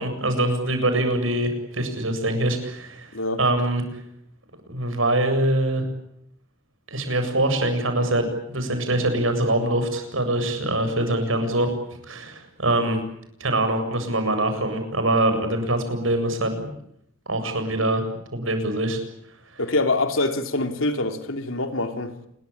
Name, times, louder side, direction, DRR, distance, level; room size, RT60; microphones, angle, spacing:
voice 1, 0.0-3.1 3.4-3.8 4.7-5.8 6.9-11.7 12.0-13.0 13.4-16.7 17.3-18.0 18.3-19.0, right 1 dB, 80° right, 7.7 m, -23 dB
voice 2, 19.6-22.1, left 2 dB, 85° left, 3.2 m, -25 dB
28.5 x 22.5 x 8.7 m
head